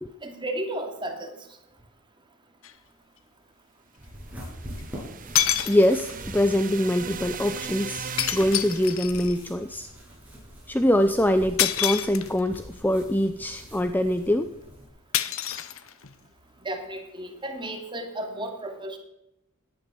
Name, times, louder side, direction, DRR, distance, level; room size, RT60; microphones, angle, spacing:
voice 1, 0.2-1.3 16.6-19.0, right 1 dB, 20° right, 3 dB, 2.6 m, -33 dB
sound 1, 2.6-2.7 4.8-4.9 5.4-6.2 8.2-9.4 11.6-12.6 15.1-16.2, left 11 dB, 65° left, 1.0 m, -27 dB
sound 2, 4.0-14.9, equal, 5° right, 6.8 m, -44 dB
sound 3, 4.2-9.1, right 7 dB, 40° right, 0.8 m, -38 dB
voice 2, 5.7-9.9 10.7-14.5, left 1 dB, 10° left, 9 dB, 0.6 m, -24 dB
17.5 x 11.0 x 7.0 m, 0.84 s
head